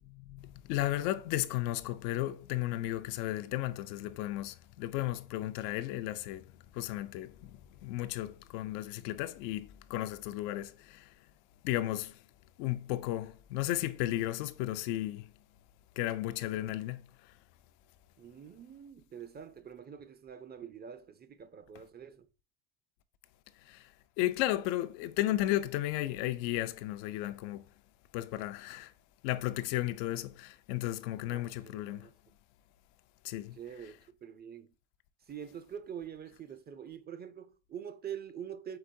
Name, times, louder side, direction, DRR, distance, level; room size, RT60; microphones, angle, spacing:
voice 1, 0.2-6.4 6.7-11.1 11.6-12.2 12.6-15.3 16.0-17.3 23.6-23.9 24.2-27.6 28.1-28.9 29.2-32.1 33.2-33.6, left 15 dB, 80° left, 0.6 m, -34 dB
voice 2, 18.2-22.3 31.2-32.1 33.5-34.7 35.3-38.8, right 8 dB, 25° right, 0.4 m, -45 dB
4.8 x 3.7 x 2.6 m
supercardioid pair, 85°, 47 cm